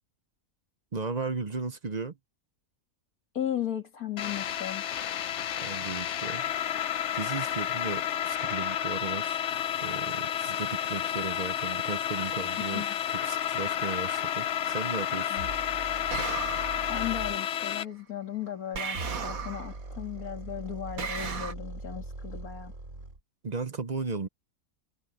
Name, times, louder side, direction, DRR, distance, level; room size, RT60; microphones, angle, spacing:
voice 1, 0.9-2.2 5.6-6.5 7.1-9.4 9.8-15.4 23.4-24.3, right 4 dB, 35° right, 0.8 m, -35 dB
voice 2, 3.3-4.9 12.7-13.0 15.3-15.5 16.9-22.7, left 10 dB, 80° left, 2.4 m, -36 dB
sound 1, 4.2-17.8, left 10 dB, 60° left, 1.0 m, -31 dB
sound 2, 15.4-17.4 18.8-23.2, right 2 dB, 55° right, 3.8 m, -41 dB
sound 3, 16.1-17.0 18.7-19.8 21.0-21.5, right 6 dB, 75° right, 2.0 m, -35 dB
omnidirectional pair, 1.5 m